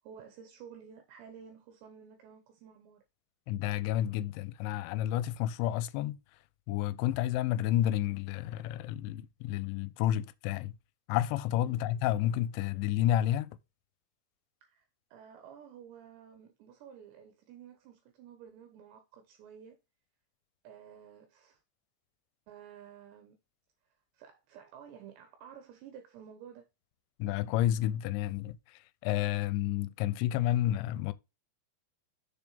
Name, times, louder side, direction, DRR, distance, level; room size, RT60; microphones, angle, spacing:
voice 1, 0.0-3.0 11.6-11.8 14.6-19.8 20.6-21.6 22.5-23.4 24.1-26.6, right 8 dB, 75° right, 3.0 m, -52 dB
voice 2, 3.5-6.2 6.7-10.8 11.1-13.5 27.2-31.1, left 13 dB, 85° left, 2.9 m, -30 dB
7.0 x 6.5 x 3.9 m
omnidirectional pair, 5.2 m